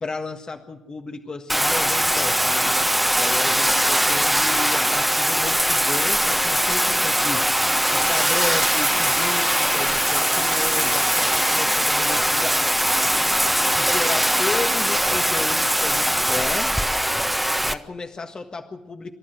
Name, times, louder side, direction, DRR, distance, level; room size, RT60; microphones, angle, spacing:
voice 1, 0.0-2.8 3.2-7.5 7.9-12.6 13.0-13.2 13.7-16.8 17.7-19.1, left 3 dB, 40° left, 5 dB, 1.6 m, -33 dB
Bathtub (filling or washing), 1.5-17.7, equal, 5° right, 1.4 m, -21 dB
28.5 x 12.0 x 8.0 m, 0.99 s
supercardioid pair, 55°, 2 cm